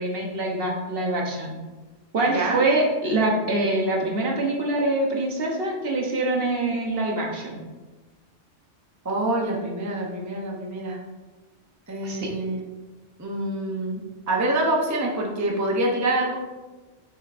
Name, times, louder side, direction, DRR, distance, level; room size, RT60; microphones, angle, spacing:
voice 1, 0.0-1.6 2.1-7.6 12.0-12.3, right 2 dB, 55° right, 0 dB, 1.2 m, -24 dB
voice 2, 2.3-2.6 9.0-11.0 11.9-12.6 13.2-14.0 14.3-16.4, right 1 dB, 15° right, -1 dB, 0.7 m, -26 dB
7.3 x 5.8 x 2.6 m, 1.2 s
omnidirectional pair, 1.2 m